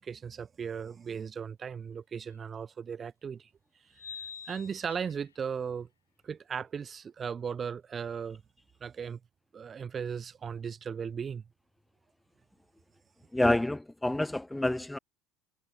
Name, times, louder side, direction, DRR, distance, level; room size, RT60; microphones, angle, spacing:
voice 1, 0.0-3.5 4.5-5.9 6.2-8.4 8.8-9.2 9.5-11.4, right 7 dB, 30° right, 4.3 m, -37 dB
sound 1, 2.3-2.4 3.9-5.4, left 7 dB, 85° left, 1.1 m, -45 dB
voice 2, 13.3-15.0, left 1 dB, 5° left, 0.8 m, -28 dB
figure-of-eight pair, 65°, 0 cm